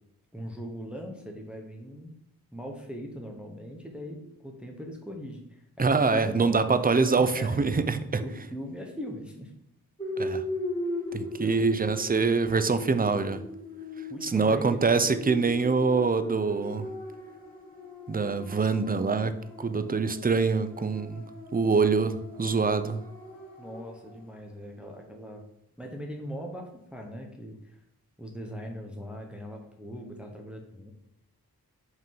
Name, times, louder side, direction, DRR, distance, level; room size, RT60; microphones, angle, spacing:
voice 1, 0.3-2.1 2.5-7.8 8.2-9.5 11.1-12.2 14.1-14.8 23.6-25.5 25.8-27.8 28.2-30.9, equal, 5° right, 1 dB, 0.9 m, -40 dB
voice 2, 5.8-8.2 10.2-10.4 11.1-13.4 14.2-16.9 18.1-23.0, right 4 dB, 25° right, 11 dB, 0.4 m, -25 dB
sound 1, 10.0-24.2, left 2 dB, 15° left, 2.4 m, -39 dB
5.4 x 3.8 x 5.3 m, 0.77 s
wide cardioid pair, 55°, 38 cm